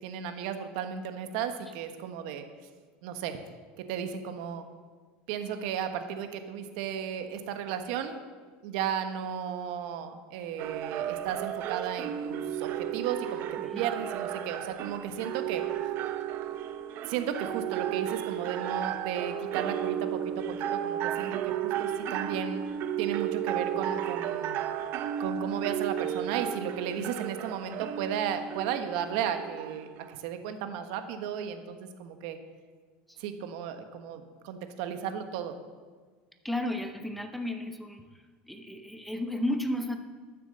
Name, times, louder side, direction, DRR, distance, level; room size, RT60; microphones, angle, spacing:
voice 1, 0.0-2.5 3.0-3.4 3.8-4.7 5.3-8.2 8.6-13.5 13.8-15.7 17.1-22.7 23.0-24.6 25.2-32.4 33.2-35.6, right 8 dB, 70° right, 7 dB, 1.3 m, -34 dB
sound 1, 10.6-30.2, right 10 dB, 50° right, 0.8 m, -33 dB
voice 2, 13.6-13.9 33.1-33.2 36.4-38.0 38.5-40.0, left 1 dB, ahead, 6 dB, 1.0 m, -33 dB
12.5 x 7.6 x 6.7 m, 1.5 s
supercardioid pair, 125°, 5 cm